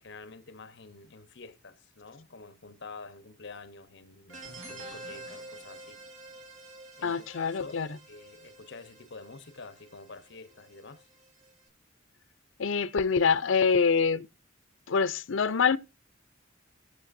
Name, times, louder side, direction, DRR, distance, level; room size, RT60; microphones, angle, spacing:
voice 1, 0.0-6.0 7.0-7.8 8.1-11.1, left 4 dB, 65° left, 1.0 m, -48 dB
sound 1, 4.3-11.6, right 2 dB, 85° right, 2.7 m, -48 dB
voice 2, 7.0-7.9 12.6-14.3 14.9-15.8, left 5 dB, 80° left, 0.6 m, -25 dB
18.0 x 6.6 x 2.6 m
head